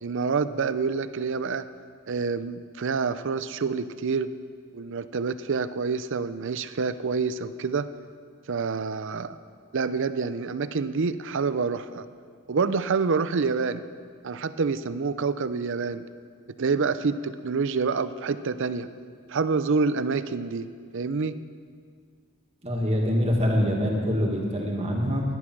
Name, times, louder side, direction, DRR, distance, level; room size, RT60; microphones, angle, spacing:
voice 1, 0.0-1.7 2.1-4.3 4.7-7.9 8.5-9.4 9.7-12.0 12.5-13.8 14.2-16.0 16.6-18.9 19.3-20.7 20.9-21.4, right 4 dB, 60° right, 13 dB, 0.6 m, -27 dB
voice 2, 22.6-25.2, equal, 30° right, -1 dB, 2.0 m, -24 dB
17.0 x 11.0 x 6.1 m, 2.1 s
head